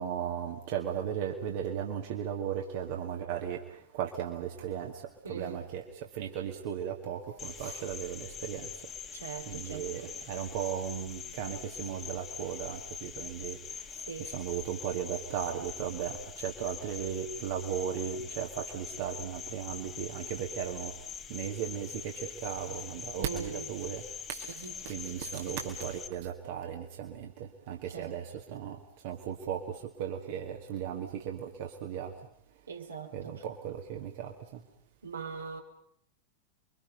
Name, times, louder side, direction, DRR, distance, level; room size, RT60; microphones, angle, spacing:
voice 1, 0.0-8.9 9.5-20.9 21.3-32.1 33.1-34.6, right 9 dB, 50° right, 2 dB, 2.0 m, -36 dB
voice 2, 5.2-5.6 9.1-10.3 13.9-14.4 23.2-23.7 24.5-24.7 27.9-28.1 32.7-33.4 35.0-35.6, right 6 dB, 75° right, 3 dB, 2.9 m, -41 dB
Cricket, 7.4-26.1, left 7 dB, 25° left, 1.7 m, -43 dB
29.5 x 23.5 x 5.3 m, 0.67 s
figure-of-eight pair, 90°, 0 cm